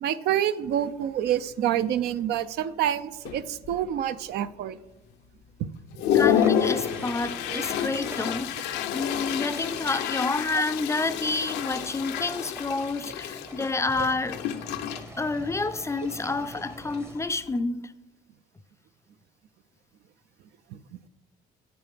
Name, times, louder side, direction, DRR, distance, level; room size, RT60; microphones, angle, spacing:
voice 1, 0.0-4.8 5.6-5.7 7.5-7.6 14.0-14.1 20.7-21.0, right 10 dB, 75° right, 0.5 m, -27 dB
Toilet flush, 0.7-0.8 1.3-1.5 1.8-2.4 2.9-3.0 3.3-4.0 4.5-4.6 5.1-5.2 5.6-17.6, left 9 dB, 85° left, 0.7 m, -30 dB
voice 2, 6.1-14.4 15.2-17.9, left 3 dB, 15° left, 0.4 m, -29 dB
sound 1, 6.3-10.0 11.0-17.4, right 2 dB, 15° right, 0.7 m, -45 dB
9.1 x 7.8 x 5.1 m
cardioid pair, 110°, 17 cm